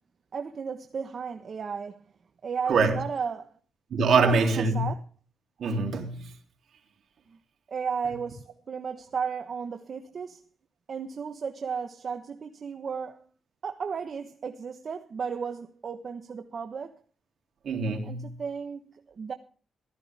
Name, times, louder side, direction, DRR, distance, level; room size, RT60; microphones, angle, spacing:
voice 1, 0.3-2.0 2.4-3.5 4.1-5.0 7.3-7.4 7.7-10.4 10.9-13.3 13.6-17.0 18.0-19.3, right 6 dB, 55° right, 1.3 m, -34 dB
voice 2, 2.7-3.0 3.9-4.8 5.6-6.3 17.6-18.3, right 4 dB, 70° right, 3.5 m, -24 dB
15.5 x 14.0 x 3.6 m
cardioid pair, 85°, 0 cm